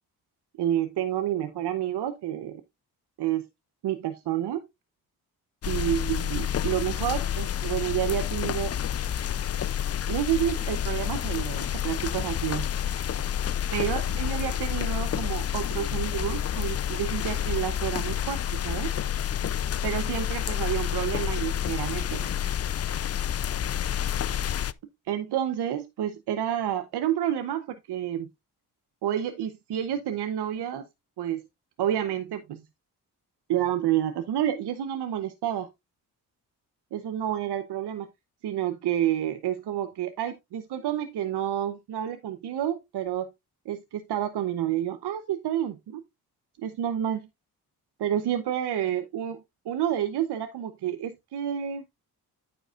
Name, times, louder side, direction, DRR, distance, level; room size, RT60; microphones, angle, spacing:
voice 1, 0.6-2.6 3.2-3.5 3.8-4.6 5.7-8.7 10.1-12.7 13.7-19.0 19.8-22.3 25.1-28.3 29.0-30.9 31.2-31.5 31.8-32.6 33.5-35.7 36.9-38.1 38.4-43.3 43.7-46.0 46.6-47.2 48.0-49.4 49.6-51.8, right 11 dB, 75° right, 0.9 m, -29 dB
sound 1, 5.6-24.7, left 10 dB, 40° left, 0.5 m, -29 dB
9.4 x 7.7 x 2.4 m
cardioid pair, 60°, 40 cm